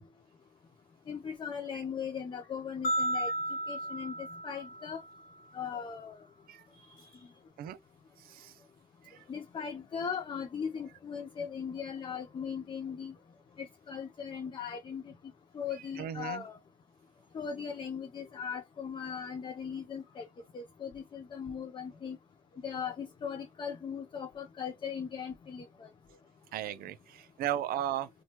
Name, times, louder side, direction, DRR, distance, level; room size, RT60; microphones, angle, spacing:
voice 1, 1.1-3.3 3.7-5.0 5.5-6.2 6.9-7.2 9.3-13.1 13.6-15.1 15.5-16.6 17.3-20.3 20.5-22.2 22.6-25.9, left 7 dB, 30° left, 0.4 m, -39 dB
sound 1, 2.8-5.2, right 1 dB, 50° left, 0.9 m, -34 dB
voice 2, 8.2-8.6 9.0-9.2 16.0-16.4 26.5-28.1, right 11 dB, 60° right, 0.4 m, -36 dB
2.9 x 2.2 x 2.8 m
cardioid pair, 110°, 17 cm